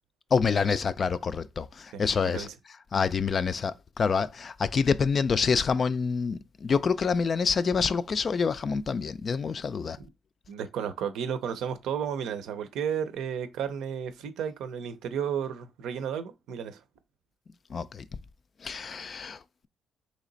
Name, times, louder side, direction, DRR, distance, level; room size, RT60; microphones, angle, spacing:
voice 1, 0.3-2.5 2.9-10.0 17.7-18.1 18.6-19.7, left 5 dB, 45° left, 0.3 m, -27 dB
voice 2, 1.9-2.5 10.0-10.1 10.5-16.8, right 8 dB, 85° right, 0.6 m, -33 dB
3.2 x 2.9 x 3.9 m
cardioid pair, 90°, 0 cm